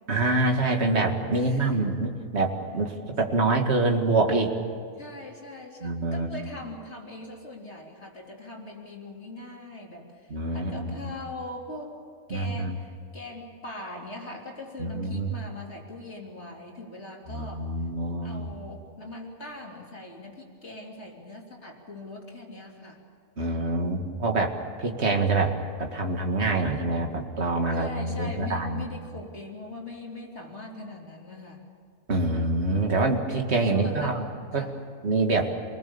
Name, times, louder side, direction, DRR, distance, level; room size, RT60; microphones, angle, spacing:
voice 1, 0.1-4.5 5.8-6.4 10.3-11.1 12.3-12.8 14.8-15.3 17.3-18.5 23.4-24.5 24.8-28.8 32.1-34.2 34.5-34.7 35.0-35.5, right 2 dB, 45° right, 3 dB, 2.3 m, -26 dB
voice 2, 1.3-1.8 5.0-11.9 12.3-17.7 18.2-23.0 27.7-31.6 33.7-34.2 34.5-34.8, left 2 dB, 45° left, -1 dB, 3.7 m, -41 dB
27.5 x 20.0 x 7.1 m, 2.3 s
omnidirectional pair, 1.6 m